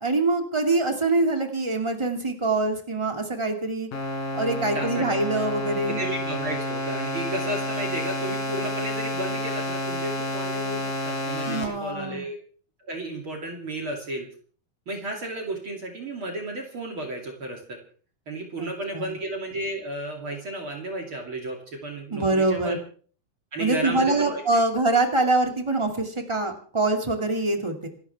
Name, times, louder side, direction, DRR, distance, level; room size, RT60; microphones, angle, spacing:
voice 1, 0.0-3.9 4.3-6.0 11.5-12.2 18.6-19.1 22.1-22.8 23.6-27.9, right 2 dB, 10° right, 3 dB, 1.7 m, -24 dB
sound 1, 3.9-11.7, left 1 dB, 70° left, 5.4 m, -30 dB
voice 2, 4.7-5.1 5.9-12.4 12.8-14.3 14.9-17.8 18.3-22.8 23.5-24.6, right 1 dB, 40° right, 1 dB, 3.2 m, -33 dB
27.5 x 13.0 x 3.5 m, 0.44 s
omnidirectional pair, 4.0 m